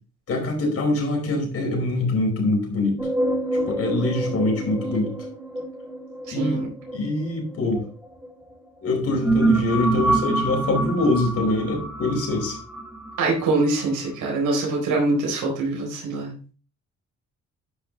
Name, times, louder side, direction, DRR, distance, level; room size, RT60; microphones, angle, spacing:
voice 1, 0.3-3.0 3.7-5.1 6.3-6.6 6.9-7.8 8.8-12.6, left 2 dB, 50° left, 1 dB, 4.7 m, -24 dB
sound 1, 3.0-8.3 8.9-13.8, right 2 dB, 5° right, 2.8 m, -27 dB
voice 2, 6.3-6.7 13.2-16.3, right 2 dB, 80° right, 0 dB, 4.2 m, -24 dB
11.5 x 5.5 x 4.0 m, 0.38 s
cardioid pair, 90°, 30 cm